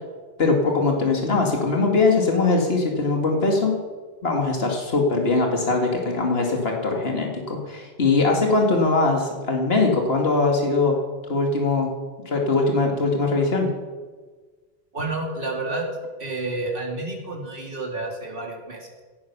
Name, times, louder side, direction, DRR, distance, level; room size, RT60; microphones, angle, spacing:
voice 1, 0.4-3.7 4.2-11.0 11.3-11.9 12.3-13.7, left 3 dB, 70° left, 1 dB, 2.3 m, -21 dB
voice 2, 14.9-15.9 16.2-19.0, right 2 dB, 60° right, 0 dB, 3.1 m, -30 dB
17.0 x 11.0 x 6.0 m, 1.4 s
omnidirectional pair, 1.1 m